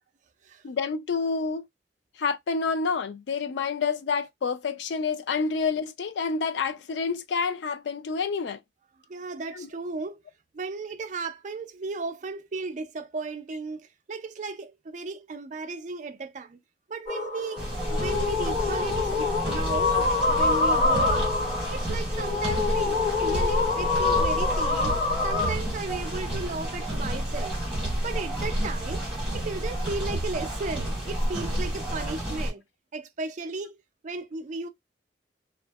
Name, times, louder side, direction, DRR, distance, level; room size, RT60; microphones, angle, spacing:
voice 1, 0.6-1.7 2.2-8.6 9.5-9.7, left 5 dB, 80° left, 0.4 m, -28 dB
voice 2, 9.1-10.2 10.5-16.6 16.9-17.6 17.9-21.3 21.7-25.0 25.2-27.6 28.0-29.0 29.3-32.6 32.9-33.8 34.0-34.7, right 3 dB, 45° right, 0.4 m, -35 dB
sound 1, 17.1-25.5, left 4 dB, 40° left, 1.4 m, -26 dB
sound 2, 17.6-32.5, right 1 dB, 5° right, 1.4 m, -30 dB
2.6 x 2.4 x 2.3 m
head